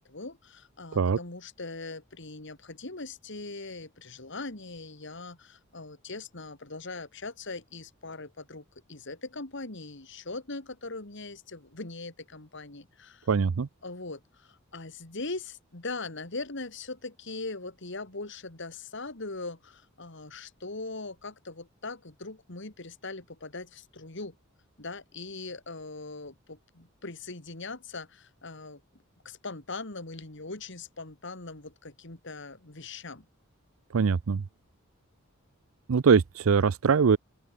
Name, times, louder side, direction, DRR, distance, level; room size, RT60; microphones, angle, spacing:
voice 1, 0.1-13.3 13.8-24.3 24.8-28.8 29.2-33.2, left 3 dB, 60° left, 2.5 m, -40 dB
voice 2, 13.3-13.7 33.9-34.4 35.9-37.2, right 5 dB, 85° right, 0.5 m, -22 dB
open air
head